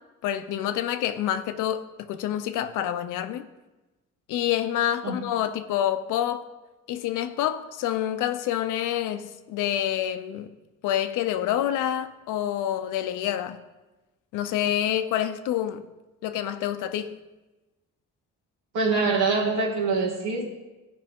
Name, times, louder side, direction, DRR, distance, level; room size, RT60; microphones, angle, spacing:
voice 1, 0.2-3.5 4.3-6.4 6.9-10.5 10.8-13.6 14.3-15.9 16.2-17.2, left 11 dB, 90° left, 0.6 m, -27 dB
voice 2, 18.7-20.5, right 4 dB, 90° right, 2.0 m, -24 dB
14.5 x 5.2 x 3.6 m
cardioid pair, 90°, 30 cm